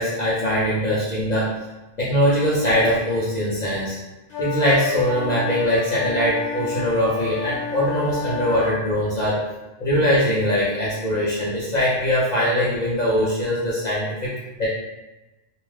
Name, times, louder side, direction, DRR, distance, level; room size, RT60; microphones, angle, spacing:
voice 1, 0.0-1.5 2.0-4.0 4.4-9.4 9.8-14.3 14.6-14.7, equal, 50° left, -7 dB, 0.5 m, -22 dB
sound 1, 4.3-8.8, left 6 dB, 70° left, 0.9 m, -29 dB
2.4 x 2.3 x 3.2 m, 1.0 s
omnidirectional pair, 1.3 m